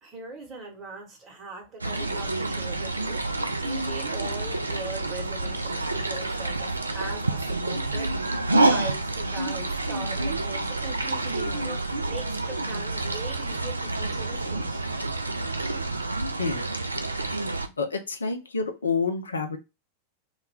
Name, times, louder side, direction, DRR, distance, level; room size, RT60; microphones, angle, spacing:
voice 1, 0.0-14.8, right 3 dB, 30° right, 1.1 m, -40 dB
sound 1, 1.8-17.7, right 2 dB, 80° right, 0.3 m, -28 dB
voice 2, 17.0-17.3 17.8-19.6, left 4 dB, 75° left, 0.5 m, -29 dB
2.3 x 2.1 x 3.4 m
figure-of-eight pair, 90°, 0 cm